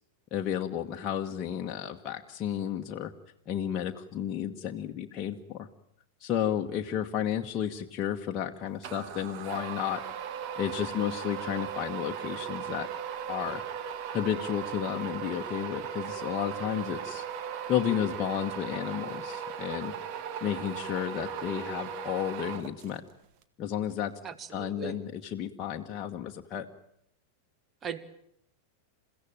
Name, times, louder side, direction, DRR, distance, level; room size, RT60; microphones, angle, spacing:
voice 1, 0.3-3.1 3.5-5.7 6.2-10.0 10.6-12.9 13.3-13.6 14.1-17.2 17.7-19.9 20.4-23.0 23.6-24.1 24.5-26.7, left 10 dB, 30° left, 1 dB, 1.4 m, -32 dB
sound 1, 8.8-23.1, right 8 dB, 45° right, 1.8 m, -37 dB
voice 2, 24.2-25.0 27.8-28.0, right 7 dB, 25° right, 14 dB, 1.6 m, -38 dB
29.0 x 16.0 x 8.9 m, 0.76 s
figure-of-eight pair, 90°, 0 cm